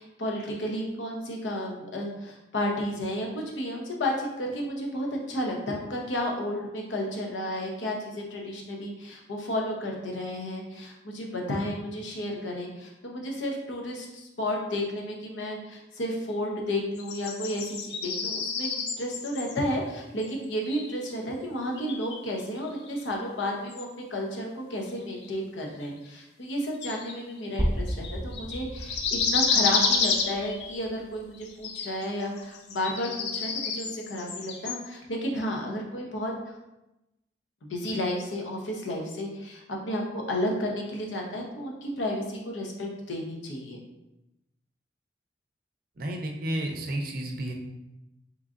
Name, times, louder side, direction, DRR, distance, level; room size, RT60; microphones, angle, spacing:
voice 1, 0.0-36.3 37.7-43.8, left 1 dB, 90° left, 0 dB, 0.7 m, -32 dB
sound 1, 17.0-19.6 20.2-20.3 20.6-21.1 21.8-23.0 23.7-23.8 25.2-25.3 25.8-25.9 26.8-27.5 27.9-30.8 31.3-32.0 32.4-34.9, left 5 dB, 65° left, 0.4 m, -30 dB
sound 2, 27.6-31.5, equal, 10° right, 0.7 m, -34 dB
voice 2, 46.0-47.5, right 1 dB, 50° right, 2 dB, 0.5 m, -31 dB
3.6 x 3.1 x 2.5 m, 0.93 s
head